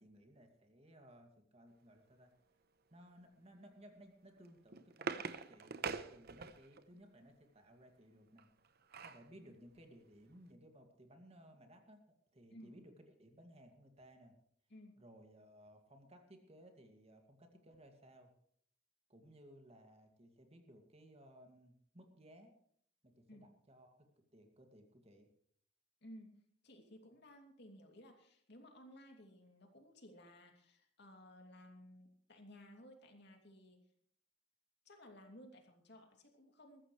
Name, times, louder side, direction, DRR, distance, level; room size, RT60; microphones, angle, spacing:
voice 1, 0.0-2.3 2.9-8.5 9.0-12.9 13.2-14.4 15.0-18.3 19.1-22.5 23.0-25.3, equal, 35° right, 4 dB, 2.3 m, -60 dB
sound 1, 4.4-6.8 8.4-9.3 9.8-9.9 10.1-10.4, right 5 dB, 55° right, 0.9 m, -44 dB
voice 2, 26.6-33.8 34.8-36.8, equal, 60° left, 3 dB, 2.8 m, -57 dB
20.5 x 15.0 x 3.3 m, 0.64 s
head